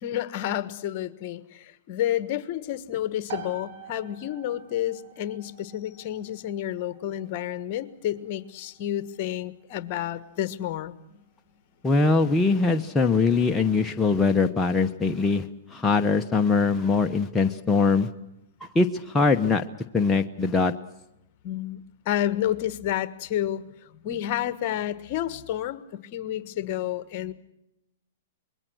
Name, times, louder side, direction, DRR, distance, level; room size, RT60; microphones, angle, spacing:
voice 1, 0.0-11.2 21.4-21.8 22.0-23.6 23.9-27.3, left 12 dB, 45° left, 15 dB, 1.5 m, -30 dB
sound 1, 3.3-17.8, right 7 dB, 60° right, 5.4 m, -49 dB
voice 2, 11.8-15.5 15.7-18.1 18.7-19.6 19.9-20.7, left 4 dB, 10° left, 3 dB, 1.0 m, -22 dB
26.5 x 22.0 x 6.3 m, 0.87 s
hypercardioid pair, 135°, 0 cm